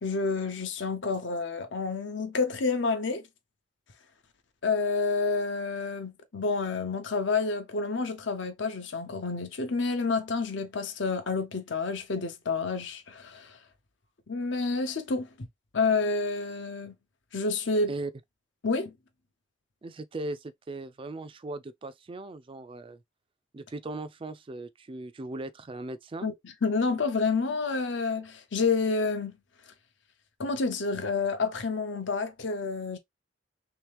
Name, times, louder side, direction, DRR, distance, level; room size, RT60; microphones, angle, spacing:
voice 1, 0.0-3.2 4.6-13.6 14.3-15.5 15.7-16.9 17.3-17.9 18.6-18.9 26.2-26.3 26.6-29.4 30.4-33.0, left 4 dB, 65° left, 0.8 m, -29 dB
voice 2, 19.8-23.0 23.5-26.3, right 2 dB, 25° right, 0.4 m, -38 dB
3.2 x 2.9 x 3.4 m
head